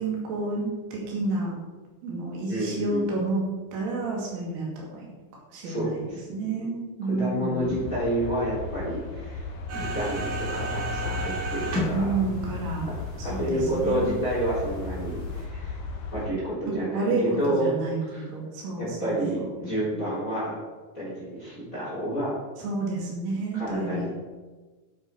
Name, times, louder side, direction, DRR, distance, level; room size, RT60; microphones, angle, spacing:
voice 1, 0.0-1.5 2.0-3.4 3.7-5.1 5.5-6.0 6.3-7.7 11.9-12.9 13.2-14.0 16.8-19.5 22.6-24.1, right 2 dB, 70° right, -3 dB, 4.7 m, -30 dB
voice 2, 2.5-3.1 5.6-6.3 7.1-12.0 12.8-12.9 13.2-15.8 16.1-17.7 18.0-18.3 18.8-20.6 20.9-22.3 23.5-24.1, right 1 dB, 20° left, -7 dB, 3.8 m, -30 dB
sound 1, 7.6-16.3, left 4 dB, 90° left, 1.8 m, -35 dB
sound 2, 9.7-15.4, right 1 dB, 45° right, 3.5 m, -34 dB
11.5 x 8.1 x 4.8 m, 1.3 s
omnidirectional pair, 5.8 m